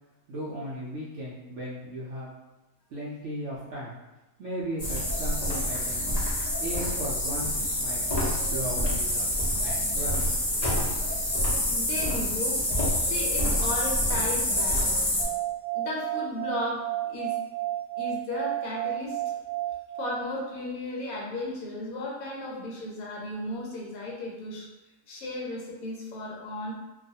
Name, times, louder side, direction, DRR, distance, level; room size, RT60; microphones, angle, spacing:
voice 1, 0.3-2.3 2.9-4.0 4.4-6.1 6.6-9.3 9.6-10.3 10.6-10.7, right 1 dB, 70° right, -7 dB, 0.7 m, -36 dB
sound 1, 4.8-15.2, left 1 dB, 50° left, 0.4 m, -27 dB
sound 2, 5.0-5.9 6.1-7.3 7.6-7.7 8.0-8.9 9.1-9.3 9.6-10.4 10.7-11.8 12.1-12.2 12.7-13.5 13.8-13.9 14.5-15.3, equal, 25° right, 0.8 m, -45 dB
voice 2, 11.7-12.6 13.0-14.9 15.7-16.8 17.1-17.3 18.0-19.2 20.0-24.7 25.1-26.7, left 2 dB, 70° left, -3 dB, 1.0 m, -35 dB
sound 3, 15.2-20.7, right 15 dB, 85° right, 1.2 m, -32 dB
2.5 x 2.3 x 2.7 m, 1.0 s
omnidirectional pair, 1.7 m